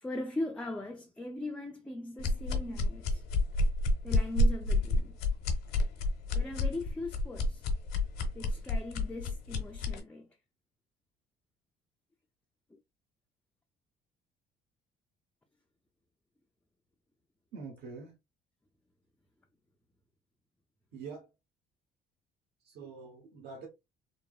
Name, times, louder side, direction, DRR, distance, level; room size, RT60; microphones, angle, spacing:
voice 1, 0.0-3.2 4.0-5.1 6.3-7.6 8.3-10.3 12.7-12.8, left 2 dB, 5° left, 0.3 m, -39 dB
sound 1, 2.2-10.0, left 1 dB, 85° left, 0.7 m, -29 dB
voice 2, 17.5-18.1 20.9-21.3 22.6-23.7, right 5 dB, 70° right, 1.1 m, -45 dB
3.2 x 2.0 x 2.3 m
cardioid pair, 110°, 17 cm